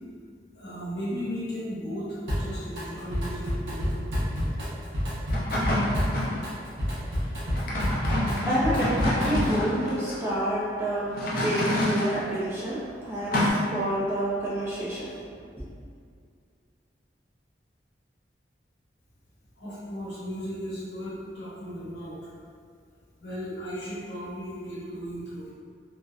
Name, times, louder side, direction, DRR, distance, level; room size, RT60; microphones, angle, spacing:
voice 1, 0.5-3.9 10.9-11.0 11.4-11.6 13.0-13.1 19.6-22.3 23.2-25.5, equal, 80° left, -10 dB, 0.9 m, -36 dB
Drum kit, 2.3-2.8 3.1-9.6, equal, 85° right, 0.7 m, -29 dB
sound 1, 5.3-6.5 7.5-10.1 11.1-12.2 13.3-13.5, left 1 dB, 55° left, 0.4 m, -27 dB
voice 2, 6.8-15.3 15.6-15.7, right 1 dB, 15° right, -8 dB, 0.4 m, -30 dB
2.5 x 2.0 x 2.4 m, 2.2 s
head